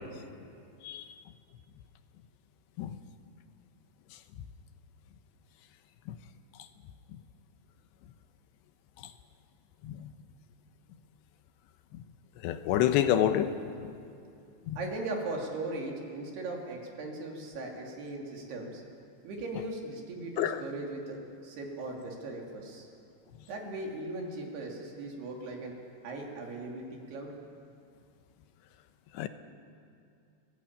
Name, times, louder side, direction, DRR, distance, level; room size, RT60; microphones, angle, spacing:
voice 1, 12.4-13.5 14.7-14.8 20.4-20.6 29.1-29.3, left 11 dB, 80° left, 9 dB, 3.1 m, -27 dB
voice 2, 14.8-18.8 19.2-22.9 23.4-25.7 26.0-27.3, right 2 dB, 65° right, 0 dB, 4.9 m, -38 dB
30.0 x 16.5 x 8.9 m, 2.4 s
omnidirectional pair, 5.1 m